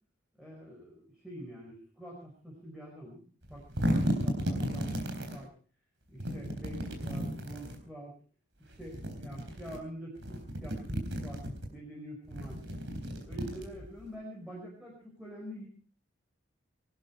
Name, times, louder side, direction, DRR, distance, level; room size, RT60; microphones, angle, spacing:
voice 1, 0.4-3.2 3.5-3.6 4.2-5.5 6.1-8.1 8.6-11.4 11.7-12.6 13.3-15.6, equal, 5° right, -4 dB, 5.4 m, -46 dB
sound 1, 3.4-5.4 6.2-7.8 8.7-9.8 10.2-11.7 12.2-14.0, equal, 65° right, 3.8 m, -34 dB
22.5 x 12.5 x 4.7 m, 0.41 s
head